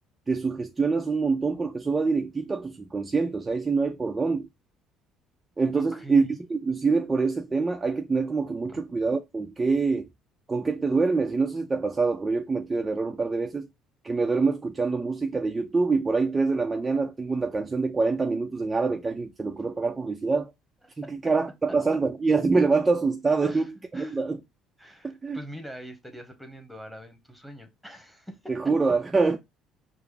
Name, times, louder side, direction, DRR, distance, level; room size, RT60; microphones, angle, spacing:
voice 1, 0.3-4.5 5.6-10.1 10.5-13.7 14.0-20.5 21.0-23.6 23.9-24.4 25.0-25.4 28.5-29.4, right 4 dB, 25° right, 0.5 m, -25 dB
voice 2, 5.8-6.3 8.6-8.8 21.0-21.3 23.4-23.7 23.9-24.2 24.8-28.5, equal, ahead, 1.2 m, -43 dB
4.7 x 2.0 x 3.3 m
supercardioid pair, 70°, 0 cm